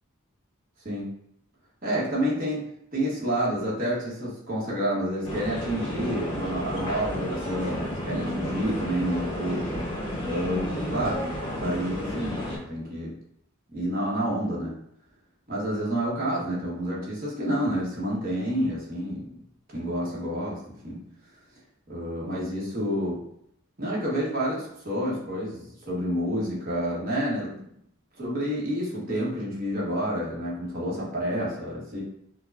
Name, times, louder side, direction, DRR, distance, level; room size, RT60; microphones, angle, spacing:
voice 1, 1.8-2.6 2.9-9.7 10.2-11.2 11.6-12.4 12.7-13.1 13.7-14.7 15.5-19.3 19.7-21.0 21.9-23.2 23.8-27.6 28.2-32.0, equal, 45° right, -5 dB, 1.1 m, -29 dB
sound 1, 5.2-12.6, left 1 dB, 25° left, 0.7 m, -31 dB
5.0 x 2.1 x 2.4 m, 0.72 s
head